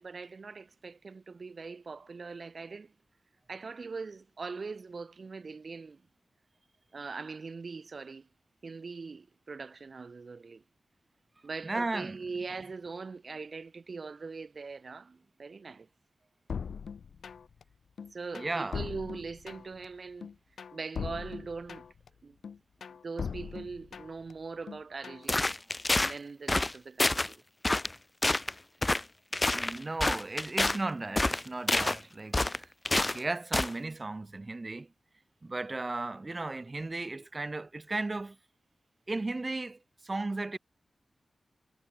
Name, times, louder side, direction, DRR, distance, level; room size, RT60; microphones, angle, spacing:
voice 1, 0.0-2.9 3.5-6.0 6.9-8.3 8.6-10.6 11.4-15.9 18.1-20.3 20.7-21.8 22.2-22.4 23.0-25.4 26.0-27.4, right 4 dB, 45° right, 1.7 m, -41 dB
voice 2, 11.6-12.2 18.3-18.9 29.5-32.7 33.0-34.9 35.4-38.4 39.1-40.6, right 2 dB, 25° right, 2.0 m, -35 dB
sound 1, 16.5-17.6 18.0-19.9 20.2-22.1 22.4-24.3 24.7-25.3, left 6 dB, 85° left, 2.0 m, -40 dB
sound 2, 25.3-26.1 26.5-26.7 27.0-27.3 27.6-27.9 28.2-28.5 28.8-29.0 29.3-30.8 31.2-32.0 32.3-33.2 33.5-33.7, left 2 dB, 15° left, 0.6 m, -27 dB
wide cardioid pair, 170°, 0 cm